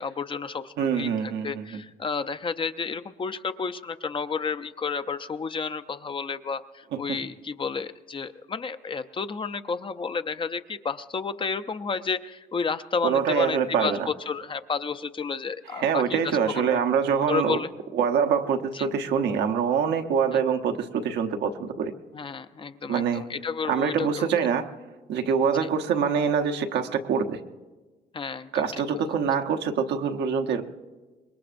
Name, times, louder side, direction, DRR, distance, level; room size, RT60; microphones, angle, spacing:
voice 1, 0.0-16.2 16.6-16.8 17.3-17.7 18.7-18.9 20.3-20.4 22.1-24.3 28.1-28.7, left 5 dB, 30° left, 11 dB, 0.5 m, -31 dB
voice 2, 0.8-1.8 6.9-7.2 13.0-14.1 15.7-17.6 17.9-21.9 22.9-23.3 23.7-24.6 25.1-27.4 28.5-30.6, right 7 dB, 85° right, 5 dB, 1.0 m, -25 dB
25.5 x 21.5 x 2.6 m, 1.3 s
cardioid pair, 120°, 17 cm